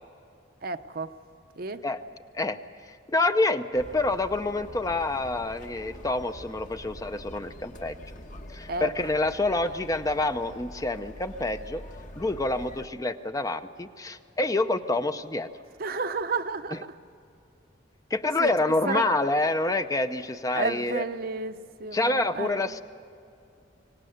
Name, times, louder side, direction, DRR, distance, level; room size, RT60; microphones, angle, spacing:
voice 1, 0.6-1.1 1.6-1.8 8.7-8.9 15.8-16.8 18.4-18.5 18.8-19.0 20.5-22.5, right 3 dB, 50° right, 9 dB, 0.8 m, -31 dB
voice 2, 2.8-8.0 8.5-11.8 12.2-15.5 16.7-16.8 18.1-21.0 21.9-22.8, left 2 dB, 20° left, 9 dB, 0.6 m, -27 dB
sound 1, 3.7-12.9, left 1 dB, 45° left, 1.3 m, -45 dB
24.5 x 18.5 x 8.0 m, 2.6 s
head